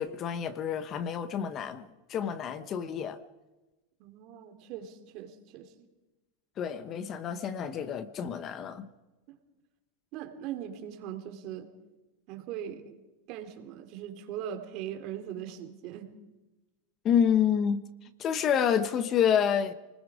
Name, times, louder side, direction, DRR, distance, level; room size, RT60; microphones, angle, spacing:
voice 1, 0.0-3.2 6.6-8.9 17.0-17.8 18.2-19.7, left 8 dB, 30° left, 1.1 m, -28 dB
voice 2, 4.0-5.9 10.1-11.7 12.3-13.0 13.3-16.1, right 10 dB, 45° right, 3.3 m, -40 dB
29.5 x 20.0 x 5.1 m
supercardioid pair, 145°, 0 cm